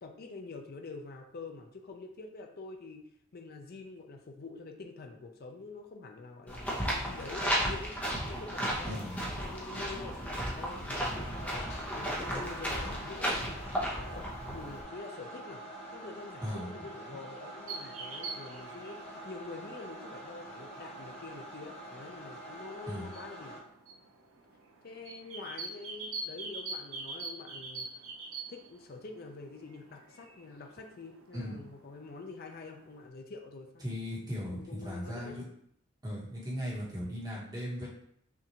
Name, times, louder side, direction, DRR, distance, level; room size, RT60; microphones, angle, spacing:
voice 1, 0.0-3.0 3.3-8.0 8.3-15.6 15.9-23.6 24.8-28.0 28.5-33.8 34.5-35.3, left 3 dB, 50° left, 3 dB, 0.5 m, -46 dB
sound 1, 6.5-14.8, equal, 5° left, 0.8 m, -34 dB
voice 2, 8.8-9.2 16.4-16.7 22.9-23.1 31.3-31.6 33.8-35.5 36.0-37.9, equal, 20° right, -5 dB, 1.3 m, -37 dB
sound 2, 11.0-23.6, right 1 dB, 30° left, 1.1 m, -46 dB
sound 3, 17.7-33.1, right 3 dB, 85° right, 0.6 m, -46 dB
5.7 x 2.6 x 2.9 m, 0.68 s
head